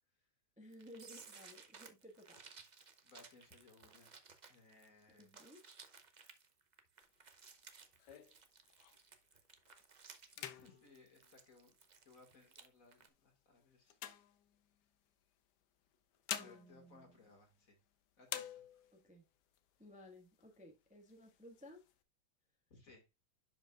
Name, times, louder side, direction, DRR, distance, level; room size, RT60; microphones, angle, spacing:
voice 1, 0.6-2.4 5.2-5.6 16.3-17.2 18.9-19.2 19.8-21.8, left 1 dB, 5° right, 1.1 m, -57 dB
sound 1, 0.7-12.7 12.9-13.1, right 5 dB, 70° right, 0.4 m, -59 dB
voice 2, 3.0-4.2 4.5-5.3 10.4-11.7 12.0-14.0 16.4-17.8 18.2-18.6 22.7-23.1, left 3 dB, 45° left, 2.3 m, -63 dB
sound 2, 7.0-9.2 9.7-9.9 10.2-12.2 12.8-15.0 15.9-17.9 18.2-19.1 19.5-19.6 19.9-20.6 21.0-21.9, left 10 dB, 65° left, 1.2 m, -49 dB
11.0 x 5.2 x 2.3 m
omnidirectional pair, 2.2 m